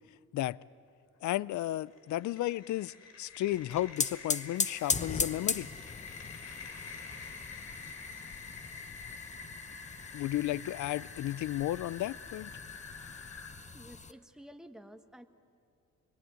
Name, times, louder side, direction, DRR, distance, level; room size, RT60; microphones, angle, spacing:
voice 1, 1.2-5.7 10.1-12.5, left 14 dB, 70° left, 0.5 m, -33 dB
sound 1, 1.6-13.5, left 5 dB, 55° left, 3.7 m, -48 dB
sound 2, 3.5-14.1, left 4 dB, 25° left, 1.0 m, -38 dB
voice 2, 13.7-15.3, equal, ahead, 1.6 m, -51 dB
26.5 x 22.5 x 9.4 m
cardioid pair, 90°, 30 cm